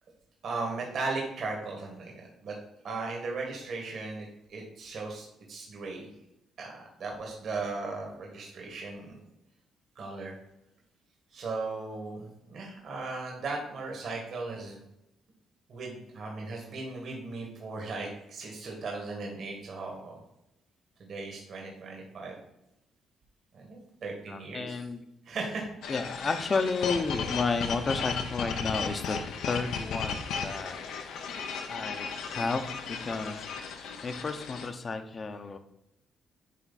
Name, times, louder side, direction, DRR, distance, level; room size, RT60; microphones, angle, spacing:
voice 1, 0.4-2.6 2.8-6.1 6.6-9.2 9.9-10.4 11.3-14.8 15.7-20.2 21.0-22.4 23.5-24.9 25.2-25.7 26.0-26.1, right 3 dB, 60° right, 0 dB, 1.7 m, -37 dB
voice 2, 24.3-25.0 25.9-31.0 31.7-35.6, left 4 dB, 35° left, 8 dB, 0.8 m, -32 dB
sound 1, 25.8-34.7, left 6 dB, 80° left, 0.8 m, -35 dB
9.3 x 3.2 x 4.1 m, 0.86 s
cardioid pair, 90°, 0 cm